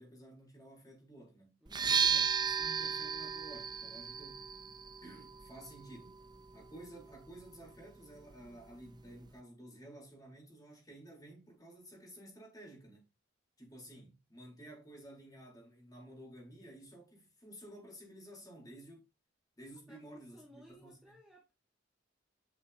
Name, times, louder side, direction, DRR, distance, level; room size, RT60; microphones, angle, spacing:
voice 1, 0.0-4.5 5.0-6.2 6.5-13.0 13.6-19.1 19.6-21.2, right 1 dB, 20° left, 4.0 m, -53 dB
voice 2, 1.6-2.0 19.9-21.6, equal, 5° right, 1.5 m, -59 dB
sound 1, 1.7-9.4, right 6 dB, 20° right, 0.4 m, -36 dB
8.6 x 5.5 x 2.8 m
head